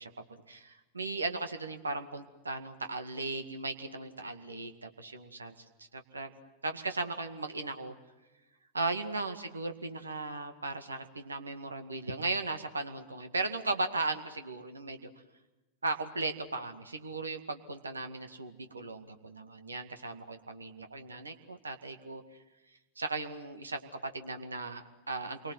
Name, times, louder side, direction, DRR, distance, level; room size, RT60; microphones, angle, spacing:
voice 1, 0.0-6.3 6.6-7.9 8.7-15.1 15.8-22.2 23.0-25.5, right 3 dB, 75° right, 8 dB, 2.1 m, -37 dB
29.0 x 24.0 x 7.8 m, 1.1 s
figure-of-eight pair, 90°, 0 cm